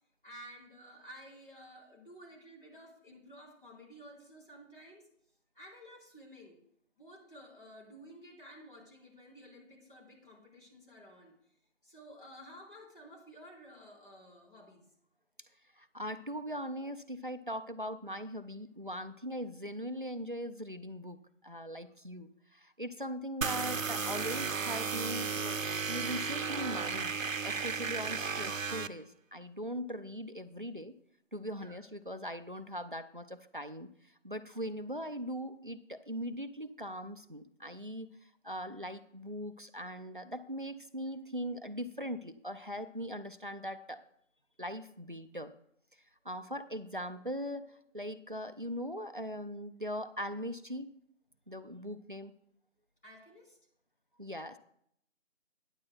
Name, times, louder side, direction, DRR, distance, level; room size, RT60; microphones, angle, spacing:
voice 1, 0.2-5.0 5.5-6.6 7.0-11.3 11.8-14.9 31.5-31.8 46.7-47.0 53.0-53.6, equal, 45° left, -2 dB, 3.9 m, -53 dB
voice 2, 15.8-25.6 25.9-27.2 27.4-30.9 31.3-33.9 34.2-38.1 38.4-44.0 44.6-45.5 46.3-50.9 51.5-52.3 54.2-54.6, equal, 45° right, 11 dB, 0.4 m, -40 dB
sound 1, 23.4-28.9, right 5 dB, 85° right, 0.7 m, -34 dB
15.5 x 9.7 x 2.2 m, 0.70 s
figure-of-eight pair, 170°, 38 cm